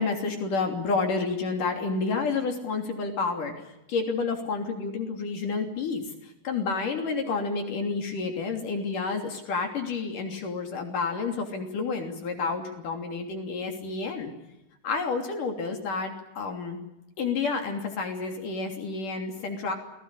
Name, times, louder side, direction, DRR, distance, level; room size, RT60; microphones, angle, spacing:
voice 1, 0.0-14.3 14.8-16.8 17.2-19.8, left 4 dB, 70° left, 4 dB, 4.7 m, -30 dB
28.0 x 20.5 x 8.4 m, 0.89 s
omnidirectional pair, 3.8 m